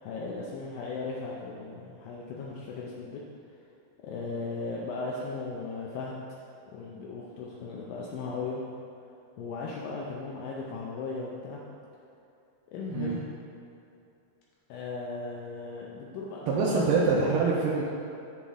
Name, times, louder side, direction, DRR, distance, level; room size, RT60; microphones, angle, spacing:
voice 1, 0.0-3.2 4.0-6.1 6.7-8.6 9.4-11.6 12.7-13.4 14.7-16.9, left 3 dB, 80° left, -3 dB, 2.3 m, -37 dB
voice 2, 16.5-17.8, right 4 dB, 80° right, -5 dB, 2.2 m, -25 dB
7.3 x 7.1 x 3.7 m, 2.7 s
omnidirectional pair, 4.2 m